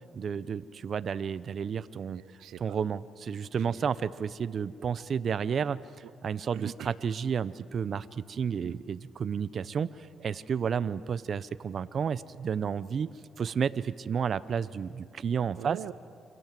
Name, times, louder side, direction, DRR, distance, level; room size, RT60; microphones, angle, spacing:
voice 1, 0.1-2.2 2.6-5.8 6.2-13.1 13.4-15.8, right 7 dB, 50° right, 15 dB, 0.8 m, -31 dB
voice 2, 2.1-2.8 3.5-3.9 6.5-6.9 8.6-8.8 15.6-15.9, right 12 dB, 85° right, 15 dB, 0.6 m, -42 dB
29.0 x 25.5 x 7.7 m, 2.4 s
cardioid pair, 90°, 0 cm